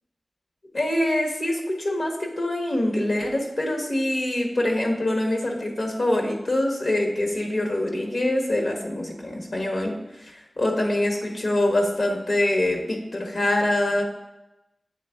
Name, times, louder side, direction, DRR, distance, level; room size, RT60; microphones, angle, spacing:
voice 1, 0.7-14.0, left 1 dB, 70° left, 1 dB, 1.3 m, -24 dB
8.3 x 3.6 x 3.5 m, 0.94 s
cardioid pair, 50°, 0 cm